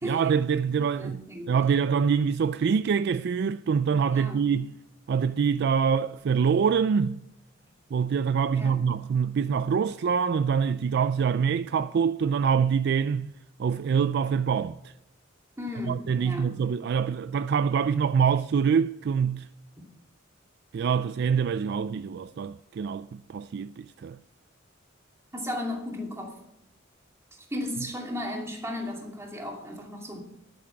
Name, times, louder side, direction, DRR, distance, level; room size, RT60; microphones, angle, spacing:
voice 1, 0.0-1.2 1.5-4.7 5.1-7.2 7.9-13.3 13.6-14.9 15.9-19.5 20.7-24.2, right 6 dB, 55° right, 0.3 m, -25 dB
voice 2, 1.0-1.6 4.1-4.4 8.5-8.8 15.6-16.5 25.3-26.4 27.5-30.2, left 1 dB, 15° right, 2.6 m, -35 dB
11.0 x 8.5 x 5.8 m
head